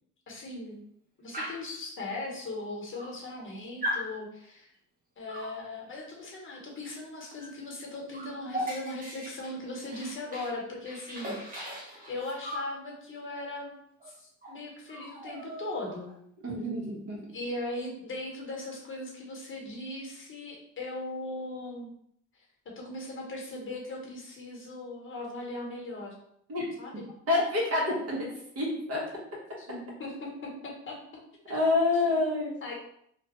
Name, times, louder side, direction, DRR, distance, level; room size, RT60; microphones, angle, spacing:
voice 1, 0.3-0.8 1.2-4.7 5.2-11.6 12.1-13.7 14.1-16.1 17.3-21.9 22.6-26.1 26.8-27.1 29.6-31.0 31.5-31.6 32.0-32.1 32.6-32.7, left 2 dB, 40° left, -1 dB, 1.0 m, -39 dB
Dog, 1.3-1.7 2.6-2.7 2.9-3.5 3.8-4.1 5.3-5.6 7.4-7.6 7.8-10.6 10.9-12.7 14.0-14.1 14.4-14.6 14.9-16.1, equal, 30° right, 1.0 m, -38 dB
voice 2, 16.4-17.2 26.5-26.7 27.3-29.0 31.5-32.5, left 2 dB, 50° right, -3 dB, 1.3 m, -27 dB
2.9 x 2.3 x 3.0 m, 0.70 s
cardioid pair, 90°, 30 cm